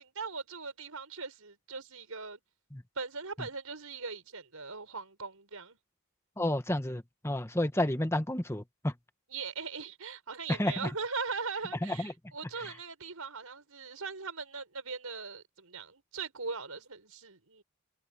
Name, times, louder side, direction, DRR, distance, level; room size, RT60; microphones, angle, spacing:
voice 1, 0.0-2.4 3.0-5.8 9.3-17.6, right 4 dB, 80° right, 5.2 m, -40 dB
voice 2, 6.4-8.9 10.5-10.9 11.8-12.1, left 1 dB, 10° left, 1.3 m, -31 dB
head